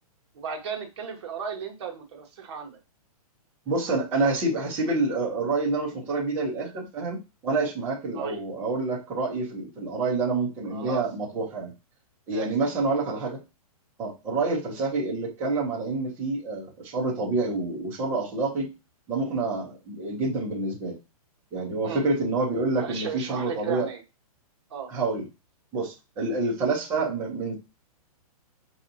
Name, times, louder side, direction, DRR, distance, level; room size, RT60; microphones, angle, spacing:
voice 1, 0.3-2.8 8.1-8.4 10.7-11.0 12.3-12.5 21.8-22.0 22.8-24.0 24.7-24.9, right 7 dB, 45° right, 2 dB, 1.0 m, -35 dB
voice 2, 3.7-7.2 7.4-11.7 12.3-13.4 14.0-18.7 19.1-21.0 21.5-23.9 24.9-25.2 25.7-27.5, right 3 dB, 10° right, -4 dB, 0.6 m, -27 dB
4.5 x 2.8 x 2.6 m, 0.27 s
hypercardioid pair, 175°, 19 cm